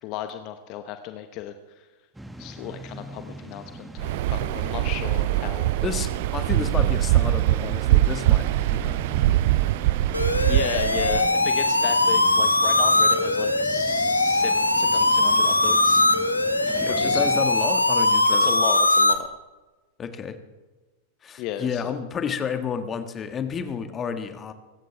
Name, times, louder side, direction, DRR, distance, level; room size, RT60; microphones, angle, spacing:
voice 1, 0.0-1.9 2.4-5.7 10.5-16.0 16.9-17.2 18.4-19.4 21.4-22.0, left 10 dB, 40° left, 8 dB, 1.0 m, -34 dB
sound 1, 2.1-17.5, right 1 dB, 5° right, 1.4 m, -41 dB
Waves surf, 4.0-11.3, right 16 dB, 50° right, 0.4 m, -23 dB
voice 2, 5.8-9.4 16.8-18.5 20.0-20.4 21.2-24.5, left 6 dB, 25° left, 8 dB, 1.8 m, -31 dB
sound 2, 10.1-19.1, left 2 dB, 85° left, 1.2 m, -21 dB
25.0 x 14.0 x 3.5 m, 1.2 s
figure-of-eight pair, 90°, 0 cm